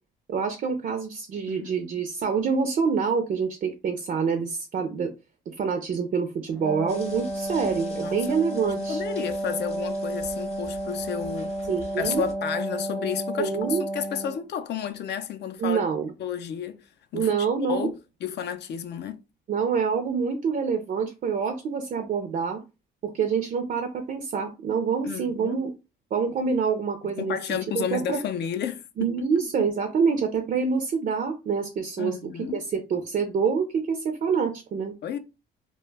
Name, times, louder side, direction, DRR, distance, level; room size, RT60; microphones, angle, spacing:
voice 1, 0.3-5.1 5.6-9.0 11.7-12.2 13.4-13.8 15.6-16.1 17.1-17.9 19.5-22.6 23.0-25.7 26.1-28.2 29.0-32.2 32.5-34.9, right 6 dB, 45° right, 0.4 m, -26 dB
voice 2, 1.5-2.0 8.0-11.5 12.0-15.8 16.2-16.8 17.1-17.3 17.6-17.9 18.2-19.2 25.0-25.6 27.0-29.3 32.0-32.6 35.0-35.2, left 8 dB, 60° left, 0.4 m, -32 dB
Wind instrument woodwind instrument, 6.5-14.5, right 1 dB, 5° left, 0.5 m, -32 dB
sound 1, 6.9-12.3, left 3 dB, 30° left, 0.8 m, -48 dB
2.1 x 2.0 x 3.2 m
cardioid pair, 90°, 20 cm